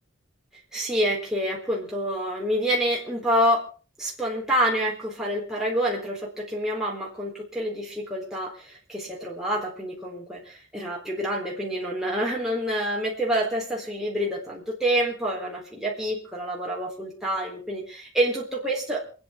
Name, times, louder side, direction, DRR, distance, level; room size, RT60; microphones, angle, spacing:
voice 1, 0.7-3.6 4.0-19.1, equal, 5° right, -4 dB, 4.1 m, -27 dB
28.0 x 9.4 x 4.4 m, 0.37 s
head